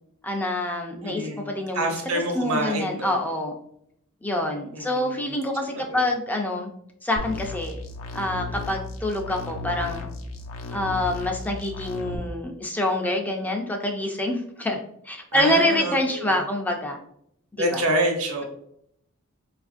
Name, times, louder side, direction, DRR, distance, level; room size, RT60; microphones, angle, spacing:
voice 1, 0.2-1.9 2.4-3.5 4.2-6.7 7.0-7.8 8.1-10.1 10.7-14.8 15.0-17.0 17.5-17.8, left 1 dB, 10° left, 2 dB, 0.3 m, -26 dB
voice 2, 0.9-3.2 4.7-5.3 5.7-6.0 15.3-16.3 17.6-18.4, right 1 dB, 80° right, 2 dB, 0.8 m, -27 dB
sound 1, 7.2-12.2, left 3 dB, 65° left, 0.5 m, -35 dB
4.2 x 2.4 x 2.4 m, 0.71 s
head